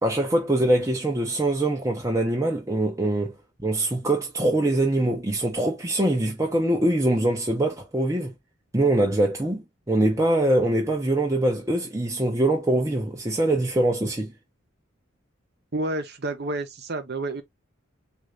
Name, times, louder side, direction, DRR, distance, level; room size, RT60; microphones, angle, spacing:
voice 1, 0.0-3.3 3.6-8.3 8.7-14.3, right 1 dB, 15° right, 0.7 m, -23 dB
voice 2, 15.7-17.4, right 2 dB, 50° right, 0.8 m, -29 dB
3.8 x 2.6 x 3.2 m
head